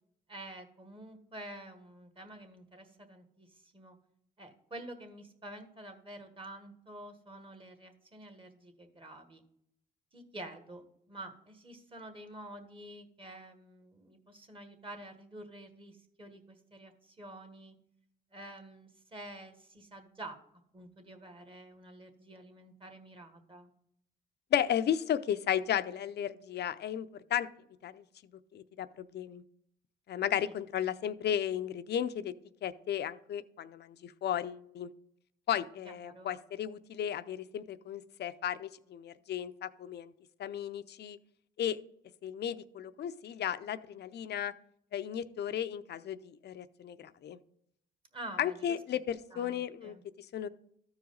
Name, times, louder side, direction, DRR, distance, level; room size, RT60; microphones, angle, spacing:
voice 1, 0.3-4.0 4.4-9.4 10.1-17.8 18.3-20.4 20.7-23.7 30.4-30.5 36.0-36.3 48.1-49.0 49.3-50.0, right 1 dB, 25° right, 6 dB, 1.5 m, -48 dB
voice 2, 24.5-27.5 27.8-28.0 28.5-29.4 30.1-32.3 32.6-34.9 35.5-40.1 40.4-41.2 41.6-41.8 42.2-44.5 44.9-47.4 48.4-50.5, left 10 dB, 60° left, 13 dB, 0.5 m, -34 dB
13.5 x 4.8 x 3.9 m, 0.73 s
cardioid pair, 90°, 20 cm